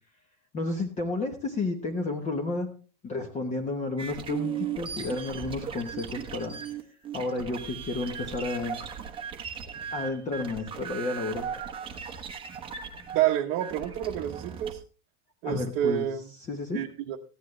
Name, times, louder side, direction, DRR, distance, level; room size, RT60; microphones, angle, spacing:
voice 1, 0.5-2.7 3.0-6.6 7.1-8.8 9.9-11.5 15.4-16.1 16.5-16.8, left 3 dB, 20° left, 4 dB, 1.1 m, -31 dB
sound 1, 4.0-14.7, right 8 dB, 15° right, 0.9 m, -37 dB
voice 2, 13.1-14.8 15.4-16.3 16.7-17.2, right 11 dB, 35° right, 0 dB, 1.0 m, -28 dB
14.5 x 10.0 x 3.2 m, 0.36 s
supercardioid pair, 170°, 37 cm